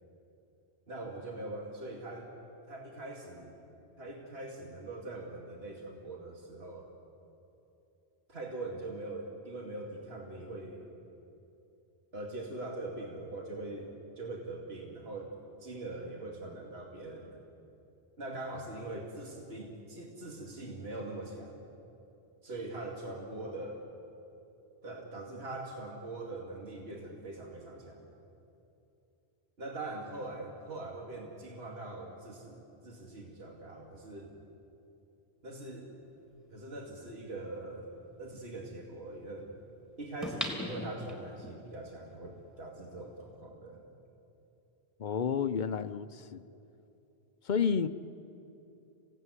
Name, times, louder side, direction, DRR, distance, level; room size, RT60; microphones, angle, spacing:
voice 1, 0.9-2.3 2.7-3.6 4.0-6.9 8.3-10.9 12.1-15.3 15.6-17.4 18.2-21.6 22.4-23.8 24.8-28.1 29.6-34.3 35.4-36.0 36.5-37.9 38.2-39.6 40.0-43.8, right 2 dB, 65° right, 0 dB, 2.6 m, -42 dB
sound 1, 36.6-36.7 40.2-41.5 42.0-42.1, left 1 dB, ahead, 3.4 m, -38 dB
voice 2, 45.0-46.4 47.4-47.9, left 6 dB, 50° left, 12 dB, 0.8 m, -30 dB
28.0 x 17.0 x 9.8 m, 2.8 s
omnidirectional pair, 1.1 m